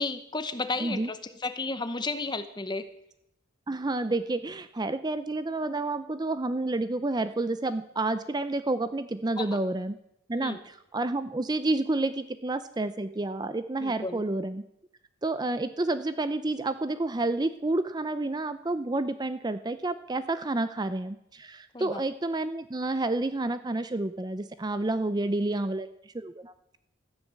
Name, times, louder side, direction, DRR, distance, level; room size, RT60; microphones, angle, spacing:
voice 1, 0.0-2.9 9.4-9.6 10.4-10.6 13.8-14.2 21.7-22.0, left 3 dB, 20° left, 11 dB, 0.8 m, -33 dB
voice 2, 3.7-10.0 10.3-14.6 15.2-26.8, right 2 dB, 20° right, 12 dB, 0.5 m, -30 dB
13.5 x 9.9 x 7.4 m, 0.79 s
head